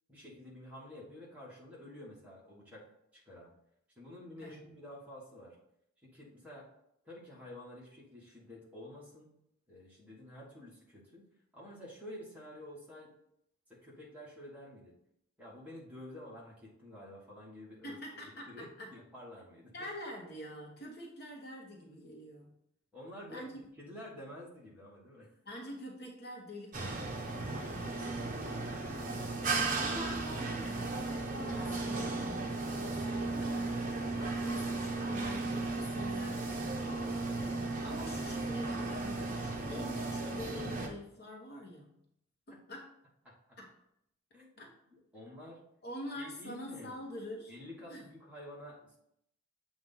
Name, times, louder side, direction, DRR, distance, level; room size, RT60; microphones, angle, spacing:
voice 1, 0.1-2.9 3.1-3.5 3.9-5.6 6.0-6.7 7.0-9.3 9.7-11.3 11.5-13.1 13.7-14.9 15.4-19.7 22.9-23.5 23.7-25.3 28.3-29.2 42.5-42.6 43.2-43.6 44.3-44.6 44.9-45.6 46.2-46.9 47.5-49.0, left 1 dB, 5° right, -5 dB, 1.5 m, -50 dB
voice 2, 17.8-18.9 19.7-22.5 23.3-23.5 25.5-27.8 29.7-33.8 34.1-36.7 37.4-42.0 42.5-43.0 43.6-43.7 44.6-44.7 45.8-47.5 47.9-48.1, left 1 dB, 45° left, -1 dB, 1.1 m, -46 dB
sound 1, 26.7-40.9, right 3 dB, 40° right, 0.8 m, -35 dB
7.7 x 2.6 x 5.4 m, 0.75 s
head